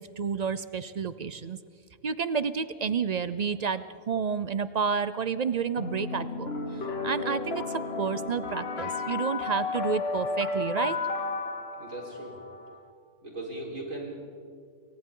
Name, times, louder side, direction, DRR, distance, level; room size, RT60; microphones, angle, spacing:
voice 1, 0.0-1.6 2.0-11.0, right 6 dB, 55° right, 13 dB, 0.4 m, -30 dB
sound 1, 5.8-12.8, left 4 dB, 50° left, 1.5 m, -33 dB
voice 2, 11.8-12.4 13.2-14.3, right 1 dB, 75° right, -2 dB, 4.7 m, -38 dB
28.5 x 24.0 x 3.8 m, 2.2 s
omnidirectional pair, 1.4 m